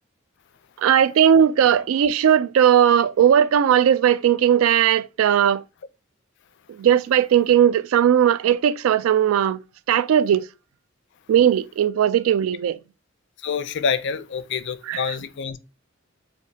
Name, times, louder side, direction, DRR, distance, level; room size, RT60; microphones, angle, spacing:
voice 1, 0.8-5.6 6.7-9.6 9.9-10.4 11.3-12.8 14.9-15.0, right 9 dB, 90° right, 0.3 m, -18 dB
voice 2, 13.4-15.6, left 6 dB, 60° left, 0.4 m, -27 dB
6.5 x 2.7 x 2.7 m
head